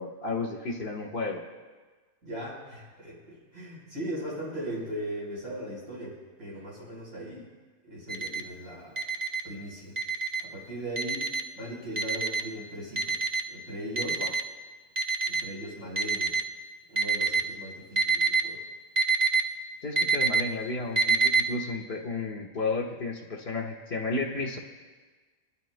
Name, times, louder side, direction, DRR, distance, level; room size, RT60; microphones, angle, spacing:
voice 1, 0.0-1.4 14.2-14.3 19.8-24.6, left 3 dB, 50° left, 1 dB, 1.6 m, -32 dB
voice 2, 2.2-7.5 7.8-9.0 9.4-9.9 10.4-11.3 11.6-13.2 13.5-14.2 15.3-16.4 16.9-18.6, right 1 dB, 85° right, -6 dB, 5.0 m, -38 dB
Alarm, 8.1-8.4 9.0-9.4 10.0-10.4 11.0-11.4 12.0-12.4 13.0-13.4 14.0-14.4 15.0-15.4 16.0-16.4 17.0-17.4 18.0-18.4 19.0-19.4 20.0-20.4 21.0-21.4, right 5 dB, 45° right, 0.6 m, -25 dB
21.5 x 12.5 x 2.2 m, 1.4 s
omnidirectional pair, 1.4 m